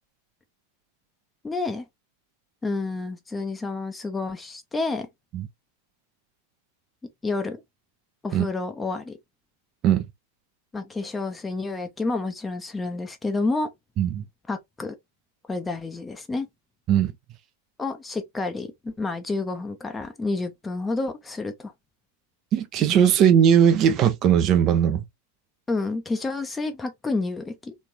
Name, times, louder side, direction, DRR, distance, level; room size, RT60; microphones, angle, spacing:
voice 1, 1.4-1.9 2.6-5.1 7.2-7.6 8.2-9.2 10.7-13.7 14.5-14.9 15.5-16.5 17.8-21.7 25.7-27.7, left 3 dB, 10° left, 0.6 m, -29 dB
voice 2, 22.5-25.0, right 9 dB, 35° right, 0.5 m, -19 dB
3.3 x 3.2 x 2.6 m
figure-of-eight pair, 90°, 0 cm